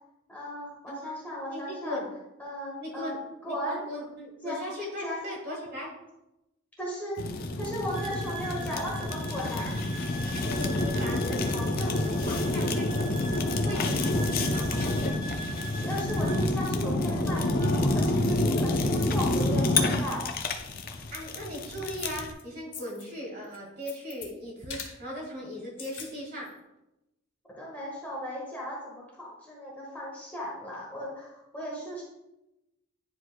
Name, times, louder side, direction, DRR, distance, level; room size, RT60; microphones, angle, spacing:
voice 1, 0.3-2.0 2.4-3.2 3.4-3.9 4.4-4.6 5.0-5.3 6.8-7.2 7.6-9.7 15.8-20.3 27.6-32.0, equal, 10° left, -4 dB, 1.4 m, -36 dB
voice 2, 1.5-2.1 2.8-3.2 3.5-5.9 10.4-12.9 13.2-15.2 21.1-26.5, equal, 45° right, -2 dB, 1.8 m, -38 dB
Fire, 7.2-22.3, left 2 dB, 45° left, 0.5 m, -28 dB
sound 1, 7.9-16.5, right 3 dB, 80° right, 2.0 m, -43 dB
sound 2, 22.0-22.4 22.7-23.1 23.4-24.3 24.7-25.0 25.6-26.1 26.5-26.6, left 6 dB, 60° left, 1.0 m, -42 dB
9.9 x 4.8 x 2.2 m, 0.92 s
head